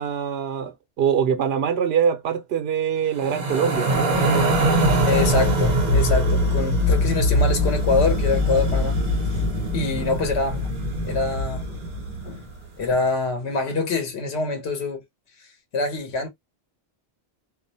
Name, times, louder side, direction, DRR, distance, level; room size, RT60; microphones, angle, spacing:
voice 1, 0.0-4.1, right 8 dB, 75° right, 0.8 m, -24 dB
sound 1, 3.2-12.5, equal, 45° right, 0.8 m, -22 dB
voice 2, 5.0-9.0 9.3-9.5 9.7-10.7 11.0-11.8 12.2-12.5 12.8-15.0 15.4-15.5 15.7-16.3, left 4 dB, 85° left, 1.0 m, -25 dB
2.3 x 2.1 x 2.6 m
omnidirectional pair, 1.1 m